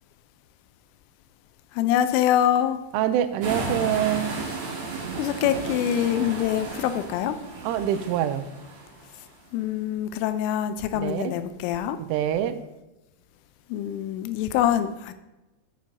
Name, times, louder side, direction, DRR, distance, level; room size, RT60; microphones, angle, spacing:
voice 1, 1.7-2.8 5.2-7.4 9.5-12.0 13.7-15.1, left 10 dB, 90° left, 10 dB, 3.1 m, -24 dB
voice 2, 2.9-4.4 7.6-8.5 10.9-11.3 12.0-12.6, right 10 dB, 85° right, 10 dB, 3.1 m, -25 dB
sound 1, 3.4-9.3, right 3 dB, 55° right, 2.2 m, -34 dB
14.5 x 6.1 x 2.8 m, 1.0 s
omnidirectional pair, 5.6 m